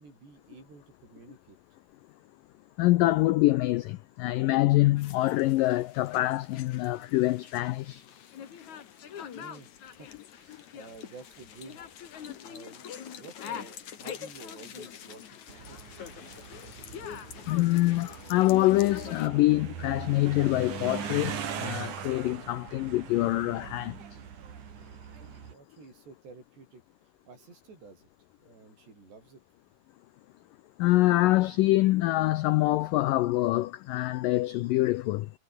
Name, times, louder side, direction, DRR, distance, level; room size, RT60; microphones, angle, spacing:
voice 1, 0.0-1.6 9.3-9.7 10.0-10.1 10.3-11.8 12.4-15.8 16.2-16.3 25.2-26.8 27.3-28.1 28.4-29.4, right 4 dB, 90° right, 10.0 m, -51 dB
voice 2, 2.8-8.0 12.3-12.4 17.5-24.0 30.8-35.3, left 17 dB, 85° left, 1.9 m, -25 dB
sound 1, 5.0-19.3, left 8 dB, 50° left, 3.2 m, -44 dB
sound 2, 15.5-25.5, right 8 dB, 50° right, 3.7 m, -41 dB
omnidirectional pair, 4.7 m